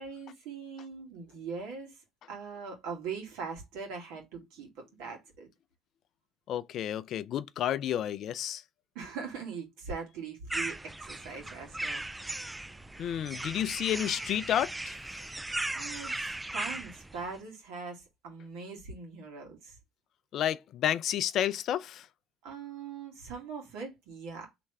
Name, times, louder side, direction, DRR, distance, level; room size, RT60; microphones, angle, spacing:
voice 1, 0.0-2.0 2.3-4.7 5.0-5.5 9.0-12.0 15.7-19.8 22.4-24.5, right 5 dB, 75° right, 1.9 m, -41 dB
voice 2, 6.5-8.6 13.0-15.0 20.3-22.1, left 10 dB, 60° left, 0.4 m, -31 dB
sound 1, 10.5-17.4, right 2 dB, 10° right, 0.4 m, -37 dB
3.4 x 3.0 x 4.7 m
hypercardioid pair, 75°, 0 cm